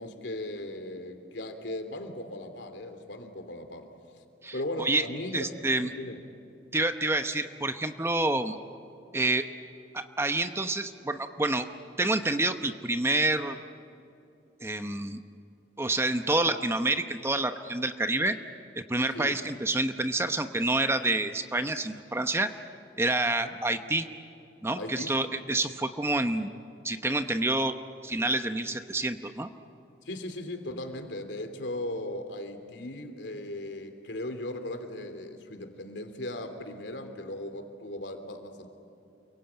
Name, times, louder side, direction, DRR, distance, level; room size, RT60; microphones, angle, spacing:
voice 1, 0.0-3.9 4.5-6.2 19.1-19.4 23.2-23.6 24.7-25.1 30.0-38.7, left 1 dB, 80° left, 7 dB, 3.1 m, -37 dB
voice 2, 4.4-5.0 5.3-5.9 6.7-8.6 9.1-9.5 9.9-11.7 12.0-13.6 14.6-15.2 15.8-18.4 18.8-22.5 23.0-24.1 24.6-26.5 26.8-27.7 28.0-29.5, right 2 dB, 15° right, 8 dB, 0.9 m, -28 dB
29.0 x 23.0 x 8.9 m, 2.7 s
head